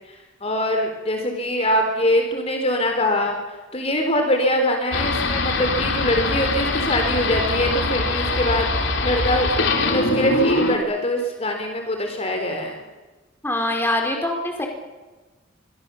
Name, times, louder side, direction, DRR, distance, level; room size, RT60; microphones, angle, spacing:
voice 1, 0.4-3.4 3.7-9.5 9.9-12.8, equal, 30° left, 4 dB, 4.1 m, -23 dB
sound 1, 4.9-10.8, left 2 dB, 75° left, 3.6 m, -23 dB
voice 2, 13.4-14.7, left 1 dB, 10° left, 2 dB, 4.6 m, -23 dB
26.5 x 23.0 x 7.2 m, 1.2 s
head